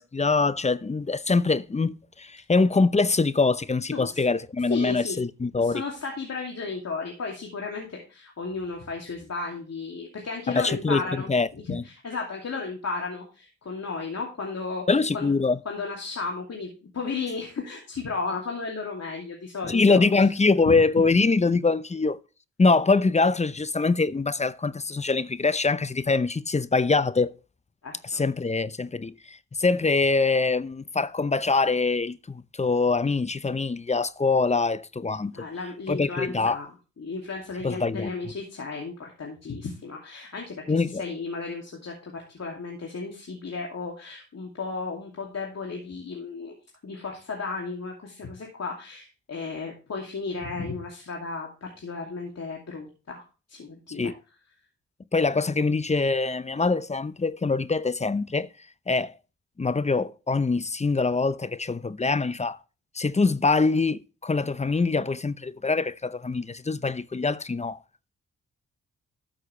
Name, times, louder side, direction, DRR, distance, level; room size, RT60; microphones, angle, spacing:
voice 1, 0.0-5.8 10.5-11.8 14.9-15.6 19.7-22.2 22.6-27.3 28.0-35.3 35.9-36.6 37.6-38.1 40.7-41.0 54.0-54.1 55.1-58.5 58.9-59.1 59.6-62.6 62.9-67.8, left 3 dB, 20° left, 0.7 m, -24 dB
voice 2, 4.7-5.2 5.6-14.9 15.1-15.4 15.6-20.2 20.6-20.8 27.8-28.2 35.3-36.7 37.0-46.5 46.8-54.1, left 4 dB, 55° left, 2.6 m, -34 dB
13.0 x 6.6 x 3.3 m
supercardioid pair, 40°, 32 cm